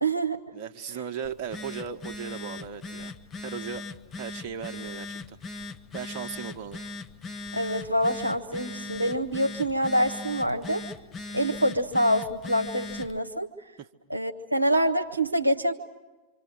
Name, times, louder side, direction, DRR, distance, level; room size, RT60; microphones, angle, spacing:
voice 1, 0.0-0.4 7.5-10.8 11.3-13.5 14.1-15.7, equal, 85° right, 4 dB, 0.9 m, -26 dB
voice 2, 0.5-3.1 3.4-3.8 4.2-5.4 5.9-6.8 13.8-13.9, right 7 dB, 40° right, 5 dB, 1.3 m, -37 dB
Telephone, 1.2-13.2, left 3 dB, 25° left, 1.1 m, -39 dB
26.0 x 26.0 x 6.5 m, 1.2 s
figure-of-eight pair, 90°, 0 cm